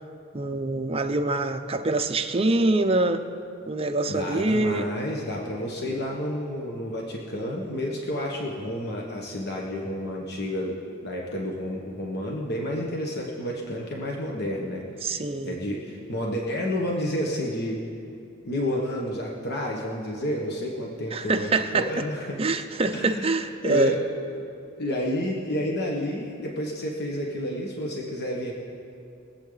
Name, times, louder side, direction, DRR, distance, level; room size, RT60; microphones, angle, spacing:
voice 1, 0.3-3.2 3.7-4.9 15.0-15.6 21.1-21.9 22.4-23.9, right 2 dB, 30° right, 6 dB, 0.7 m, -25 dB
voice 2, 4.1-10.8 11.0-17.8 18.4-22.4 22.9-24.0 24.3-24.4 24.8-28.5, equal, 55° left, -2 dB, 1.4 m, -30 dB
23.0 x 8.3 x 4.0 m, 2.6 s
head